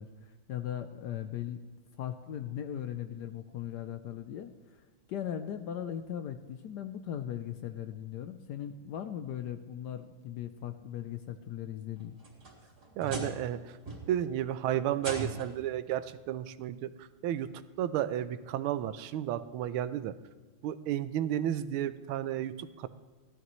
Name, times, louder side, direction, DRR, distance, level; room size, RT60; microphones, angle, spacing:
voice 1, 0.0-1.6 2.0-4.8 5.1-12.2, left 10 dB, 75° left, 9 dB, 1.0 m, -38 dB
sound 1, 12.0-13.5 13.9-14.3 15.0-15.7 16.8-16.9 17.6-17.7 19.3-19.4, right 2 dB, 50° right, 3.3 m, -40 dB
voice 2, 13.0-13.8 14.1-17.5 17.8-20.1 20.6-22.9, right 11 dB, 85° right, 13 dB, 1.4 m, -32 dB
16.0 x 12.5 x 3.1 m, 1.4 s
omnidirectional pair, 2.3 m